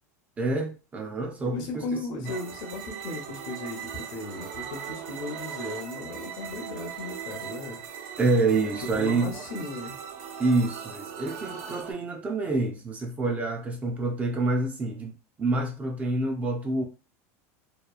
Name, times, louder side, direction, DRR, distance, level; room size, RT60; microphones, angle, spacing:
voice 1, 0.4-2.3 8.2-9.4 10.4-16.8, right 2 dB, 15° right, 0.4 m, -27 dB
voice 2, 1.4-7.8 8.9-10.0, left 3 dB, 55° left, 0.7 m, -36 dB
sound 1, 2.2-11.9, right 8 dB, 70° right, 0.7 m, -39 dB
2.8 x 2.3 x 2.3 m
supercardioid pair, 145°, 8 cm